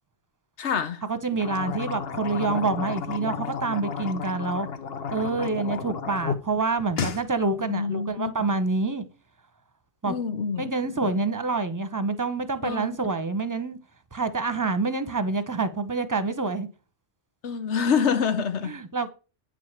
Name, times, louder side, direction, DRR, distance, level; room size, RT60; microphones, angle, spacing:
voice 1, 0.6-1.0 7.6-8.3 10.1-11.2 12.6-12.9 17.4-18.8, left 6 dB, 80° left, 1.3 m, -27 dB
voice 2, 1.1-4.7 5.1-9.1 10.0-10.1 10.6-13.8 14.1-16.7 18.6-19.1, right 3 dB, 20° right, 0.9 m, -27 dB
sound 1, 1.3-6.4 6.7-7.2, left 6 dB, 60° left, 1.1 m, -32 dB
9.0 x 4.9 x 7.3 m
omnidirectional pair, 1.1 m